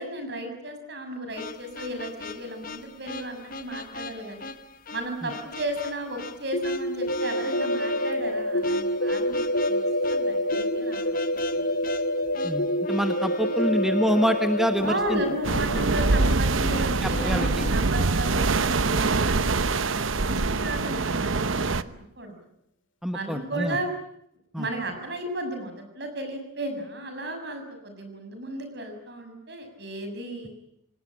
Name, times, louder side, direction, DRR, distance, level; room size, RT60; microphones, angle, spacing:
voice 1, 0.0-4.5 4.9-11.7 13.4-13.8 14.8-22.4 23.1-23.9 24.6-30.5, right 1 dB, 55° right, 6 dB, 6.9 m, -34 dB
sound 1, 1.3-17.8, left 3 dB, 45° left, 1.3 m, -40 dB
sound 2, 6.5-18.2, equal, 75° left, 2.3 m, -28 dB
voice 2, 12.4-15.2 17.2-17.6 23.0-23.8 24.5-24.7, equal, ahead, 6 dB, 1.2 m, -26 dB
sound 3, 15.4-21.8, right 3 dB, 80° right, 1.0 m, -24 dB
28.5 x 19.0 x 9.0 m, 0.77 s
head